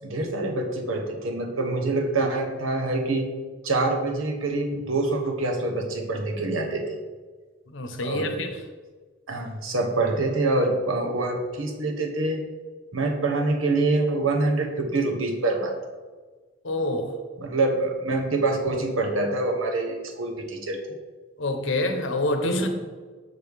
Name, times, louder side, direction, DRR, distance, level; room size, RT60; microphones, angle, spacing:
voice 1, 0.0-3.3 3.6-7.0 8.0-8.4 9.3-12.4 12.9-15.7 17.4-20.8 22.4-22.6, right 2 dB, 90° right, 4 dB, 1.0 m, -25 dB
voice 2, 7.7-8.5 16.6-17.1 21.4-22.7, left 1 dB, 70° left, 5 dB, 0.9 m, -26 dB
6.6 x 6.3 x 3.5 m, 1.4 s
head